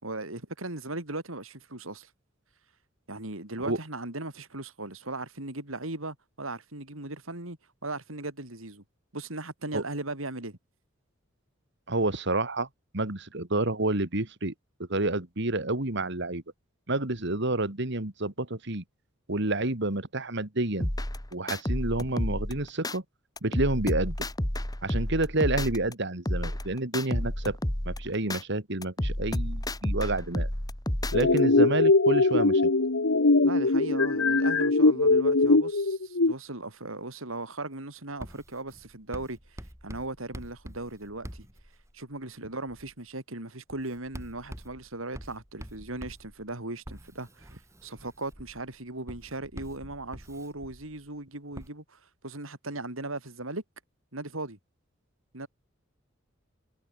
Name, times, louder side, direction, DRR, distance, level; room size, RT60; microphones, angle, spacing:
voice 1, 0.0-2.1 3.1-8.8 9.1-10.6 33.4-41.5 41.9-47.5 47.8-53.6 54.1-54.6 55.3-55.5, right 2 dB, 85° right, 4.4 m, -38 dB
voice 2, 11.9-12.7 12.9-14.5 14.8-16.4 16.9-18.8 19.3-20.9 21.3-23.0 23.4-24.2 24.8-27.6 27.9-30.5 31.1-32.7, right 2 dB, 60° right, 2.6 m, -29 dB
sound 1, 20.8-23.0 23.4-25.9 26.3-28.4 28.8-31.4, left 1 dB, 20° left, 2.0 m, -31 dB
sound 2, 31.1-36.3, left 3 dB, 75° left, 1.2 m, -21 dB
Writing, 38.2-42.1 42.7-43.0 43.7-51.1 51.6-51.7, equal, 15° right, 6.5 m, -46 dB
head